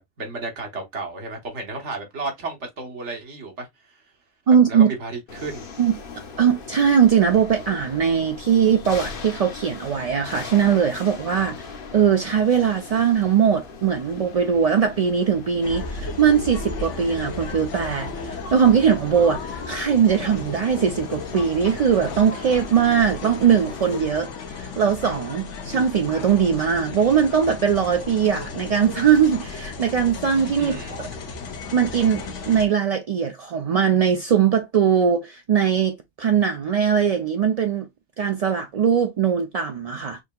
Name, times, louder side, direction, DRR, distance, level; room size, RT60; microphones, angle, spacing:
voice 1, 0.2-4.0 4.7-5.7 30.6-31.3, right 3 dB, 75° right, 1.5 m, -33 dB
voice 2, 4.5-4.9 5.8-5.9 6.4-11.6 11.9-31.1 31.7-37.9 38.2-40.2, right 7 dB, 55° right, 0.4 m, -20 dB
sound 1, 5.3-24.0, left 4 dB, 55° left, 0.9 m, -39 dB
sound 2, 15.6-32.7, left 4 dB, 80° left, 1.1 m, -35 dB
6.1 x 2.8 x 2.2 m
omnidirectional pair, 1.2 m